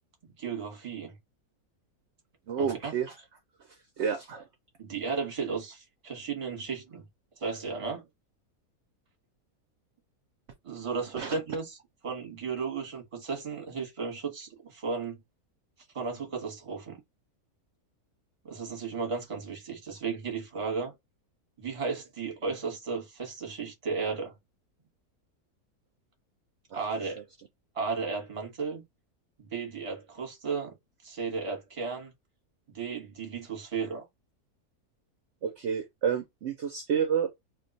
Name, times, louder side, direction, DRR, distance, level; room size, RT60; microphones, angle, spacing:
voice 1, 0.2-1.1 2.6-2.9 4.8-7.0 7.4-8.0 10.6-11.8 12.0-15.2 15.9-17.0 18.4-20.9 21.6-24.3 26.7-27.2 27.7-28.8 29.5-30.7 31.0-32.1 32.7-34.0, right 5 dB, 25° right, 0.9 m, -34 dB
voice 2, 2.5-3.1 4.0-4.5 11.1-11.4 26.7-27.1 35.4-37.3, right 7 dB, 60° right, 0.7 m, -30 dB
2.5 x 2.3 x 3.9 m
omnidirectional pair, 1.6 m